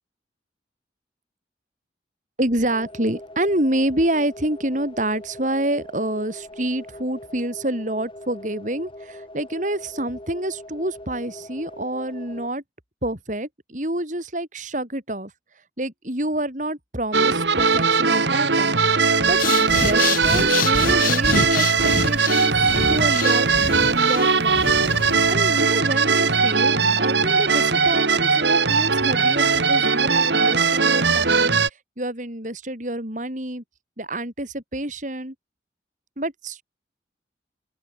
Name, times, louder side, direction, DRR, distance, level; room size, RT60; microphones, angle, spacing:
voice 1, 2.4-12.6 13.0-15.3 15.8-23.5 23.9-24.8 25.3-31.6 32.0-33.6 34.0-35.3 36.2-36.6, right 1 dB, 45° right, 5.2 m, -28 dB
sound 1, 2.7-12.5, left 1 dB, 30° left, 4.6 m, -41 dB
sound 2, 17.1-31.7, right 5 dB, 80° right, 2.3 m, -19 dB
Breathing, 19.3-25.3, left 4 dB, 50° left, 1.4 m, -27 dB
open air
head